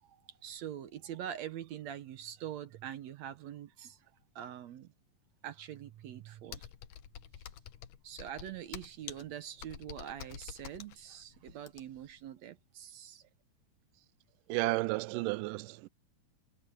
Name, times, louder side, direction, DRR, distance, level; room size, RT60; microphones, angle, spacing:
voice 1, 0.0-4.0 4.4-4.9 5.4-6.6 8.0-13.2, right 10 dB, 65° right, 1.9 m, -44 dB
Computer keyboard, 6.5-12.1, left 10 dB, 75° left, 2.7 m, -48 dB
voice 2, 14.5-15.9, right 21 dB, 90° right, 2.2 m, -32 dB
omnidirectional pair, 3.7 m